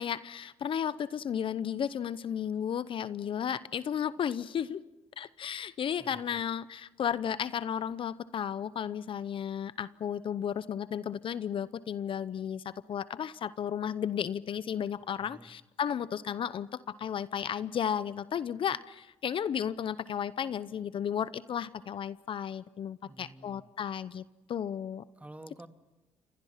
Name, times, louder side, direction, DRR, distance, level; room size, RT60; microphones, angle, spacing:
voice 1, 0.0-4.8 5.2-25.0, left 8 dB, 55° left, 16 dB, 0.8 m, -34 dB
voice 2, 6.0-6.4 15.2-15.5 23.0-23.6 25.2-25.7, right 1 dB, 15° right, 7 dB, 2.1 m, -50 dB
29.5 x 25.5 x 5.8 m, 1.1 s
supercardioid pair, 70°, 10 cm